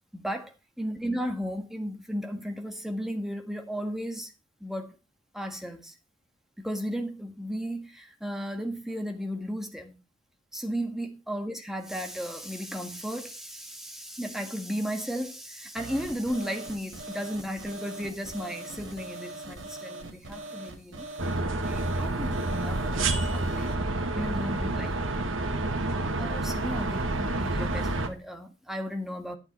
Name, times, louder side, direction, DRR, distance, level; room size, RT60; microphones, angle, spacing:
voice 1, 0.1-4.3 4.6-5.0 5.3-5.9 6.6-10.0 10.5-21.1 21.6-23.7 24.1-25.1 26.2-29.4, equal, ahead, 1.6 m, -35 dB
sound 1, 15.8-23.8, right 2 dB, 70° right, 2.0 m, -42 dB
sound 2, 21.2-28.1, right 2 dB, 85° right, 1.8 m, -29 dB
10.5 x 8.8 x 4.3 m
head